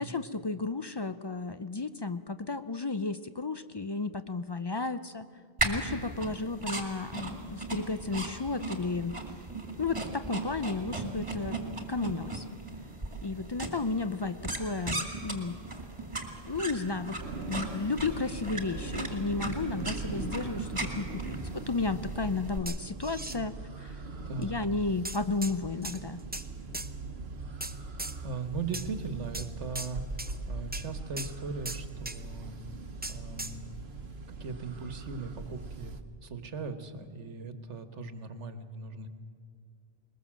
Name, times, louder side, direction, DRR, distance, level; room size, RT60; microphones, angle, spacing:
voice 1, 0.0-5.3 5.6-9.2 9.8-12.5 13.2-15.6 16.5-17.2 17.5-24.0 24.4-26.2, left 3 dB, 40° left, 11 dB, 0.3 m, -33 dB
sound 1, 5.6-22.6, right 2 dB, 25° right, 2.3 m, -37 dB
sound 2, 17.2-36.0, right 3 dB, 65° right, 1.3 m, -41 dB
sound 3, 22.7-23.4 24.4-24.5 25.1-25.5 25.8-26.5 26.7-26.9 27.6-28.2 28.7-28.9 29.3-29.5 29.8-29.9 30.2-30.4 30.7-30.9 31.2-31.3 31.7-32.2 33.0-33.6, right 2 dB, 10° right, 0.6 m, -38 dB
voice 2, 24.2-24.6 28.2-32.5 33.1-33.6 34.4-35.9 36.2-39.1, right 4 dB, 85° right, 9 dB, 1.6 m, -39 dB
21.5 x 20.5 x 7.4 m, 2.3 s
omnidirectional pair, 1.2 m